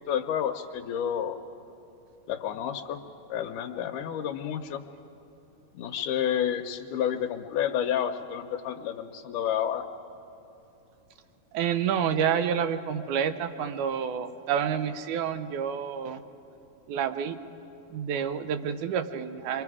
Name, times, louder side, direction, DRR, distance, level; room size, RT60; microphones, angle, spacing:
voice 1, 0.1-1.4 2.3-3.0 3.3-4.8 5.7-9.9, left 9 dB, 80° left, 3 dB, 2.2 m, -30 dB
voice 2, 11.5-16.2 16.9-17.4 17.9-19.6, right 8 dB, 75° right, 10 dB, 2.2 m, -28 dB
28.0 x 23.0 x 4.9 m, 3.0 s
omnidirectional pair, 3.7 m